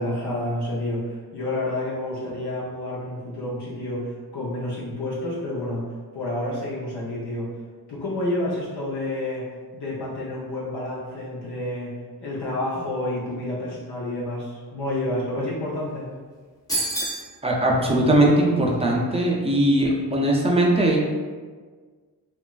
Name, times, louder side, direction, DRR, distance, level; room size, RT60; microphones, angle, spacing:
voice 1, 0.0-7.5 7.9-9.5 9.7-16.1, left 1 dB, 80° left, -7 dB, 0.6 m, -29 dB
sound 1, 16.7-17.3, right 2 dB, 10° left, 0.7 m, -26 dB
voice 2, 17.4-21.0, right 1 dB, 15° right, -3 dB, 0.4 m, -20 dB
2.9 x 2.3 x 2.3 m, 1.5 s
wide cardioid pair, 105°, 39 cm